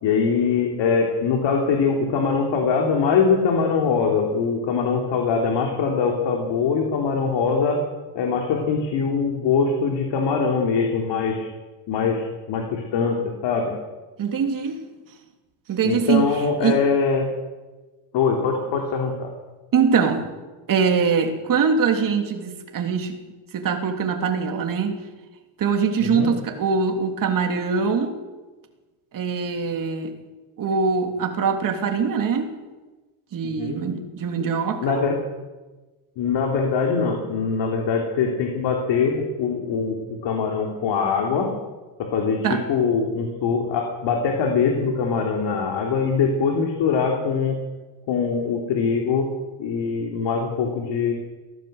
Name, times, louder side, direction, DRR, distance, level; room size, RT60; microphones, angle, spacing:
voice 1, 0.0-7.8 8.2-11.5 11.9-13.7 15.8-17.3 18.1-19.3 26.0-26.3 33.4-33.8 34.4-34.5 34.8-35.2 36.2-40.0 40.2-41.5 42.0-47.6 48.1-49.3 49.6-51.1, left 5 dB, 65° left, 2 dB, 3.7 m, -22 dB
voice 2, 14.2-14.8 15.7-16.3 16.6-16.8 18.5-18.6 19.7-20.3 20.7-23.2 23.5-25.0 25.6-28.1 29.1-30.1 30.6-32.5 33.3-35.0 42.4-42.6, right 6 dB, 45° right, 4 dB, 3.4 m, -23 dB
23.0 x 17.0 x 8.1 m, 1.2 s
cardioid pair, 140°, 46 cm